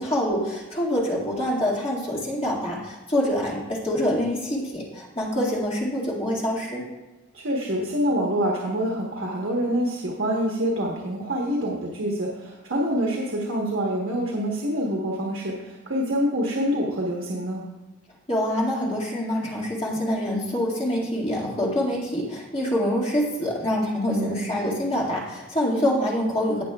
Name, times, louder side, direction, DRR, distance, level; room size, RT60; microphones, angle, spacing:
voice 1, 0.0-6.8 18.3-26.6, left 1 dB, 30° left, -4 dB, 2.0 m, -25 dB
voice 2, 7.3-17.6 24.0-24.3, equal, 75° right, -2 dB, 1.3 m, -26 dB
17.5 x 6.8 x 2.4 m, 1.1 s
head